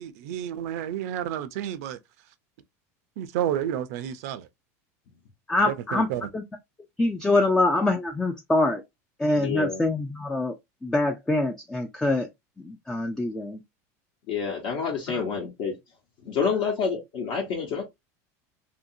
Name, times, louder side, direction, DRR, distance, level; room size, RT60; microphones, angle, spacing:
voice 1, 0.0-2.0 3.2-4.5 5.6-6.3, right 10 dB, 70° right, 0.5 m, -30 dB
voice 2, 5.5-6.1 6.3-6.4 7.0-8.8 9.2-10.5 10.8-12.3 12.6-13.6 15.1-15.2, left 2 dB, 5° left, 0.3 m, -24 dB
voice 3, 9.3-9.8 14.3-15.8 16.3-17.8, left 6 dB, 60° left, 1.0 m, -28 dB
2.8 x 2.6 x 2.6 m
supercardioid pair, 150°, 8 cm